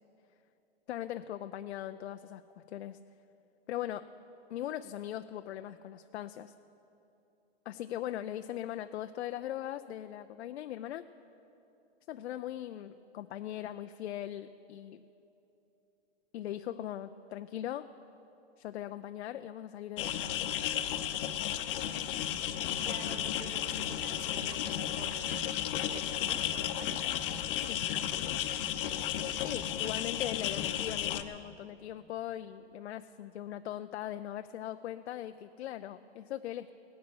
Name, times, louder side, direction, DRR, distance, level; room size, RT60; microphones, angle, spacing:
voice 1, 0.9-3.0 3.7-4.1 4.5-6.5 7.7-11.0 12.1-15.0 16.3-17.9 18.6-20.4 27.6-27.9 29.4-36.7, left 12 dB, 75° left, 9 dB, 0.5 m, -40 dB
sound 1, 20.0-31.2, left 11 dB, 55° left, 0.9 m, -33 dB
voice 2, 22.5-26.9, right 6 dB, 70° right, 8 dB, 1.5 m, -49 dB
17.0 x 10.5 x 7.1 m, 3.0 s
hypercardioid pair, 145°, 33 cm